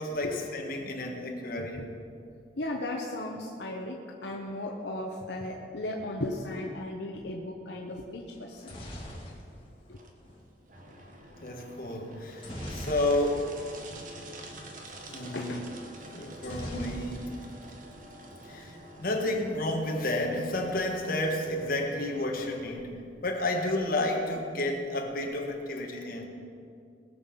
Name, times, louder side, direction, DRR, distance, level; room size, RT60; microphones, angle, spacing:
voice 1, 0.0-1.9 11.4-13.5 15.1-15.6 16.1-17.3 18.4-23.0 23.2-26.3, left 1 dB, 50° left, 1 dB, 1.9 m, -31 dB
voice 2, 2.6-8.7 9.9-10.0 14.4-14.5 15.3-15.7 18.5-18.6, left 1 dB, 75° left, 0 dB, 1.1 m, -36 dB
sound 1, 8.3-10.5 12.4-13.6 13.9-14.0 14.2-14.5 16.4-17.6 17.9-18.5, equal, 30° left, 2.8 m, -41 dB
sound 2, 8.7-25.7, right 1 dB, 45° right, 1.4 m, -48 dB
20.5 x 7.1 x 5.8 m, 2.4 s
head